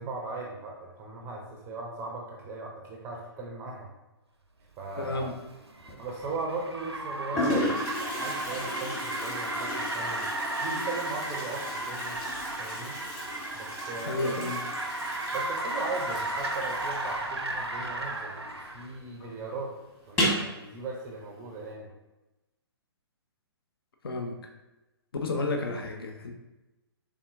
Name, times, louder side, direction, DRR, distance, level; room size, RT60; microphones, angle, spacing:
voice 1, 0.0-3.9 4.8-5.3 6.0-10.3 10.6-12.2 12.5-13.0 13.5-14.4 15.3-19.7 20.1-21.9, right 3 dB, 15° right, 0 dB, 0.5 m, -38 dB
Car, 4.9-18.9, right 2 dB, 90° right, 0.6 m, -34 dB
voice 2, 5.0-5.3 14.0-14.6 19.2-19.3 24.0-24.4 25.2-26.3, left 2 dB, 65° left, 4 dB, 0.6 m, -31 dB
Toilet flush, 5.9-6.3 7.0-7.1 7.3-18.6 18.9-19.0 19.3-19.4 20.0-20.5, left 1 dB, 15° left, 1.2 m, -35 dB
4.1 x 3.5 x 2.5 m, 1.0 s
figure-of-eight pair, 125°, 14 cm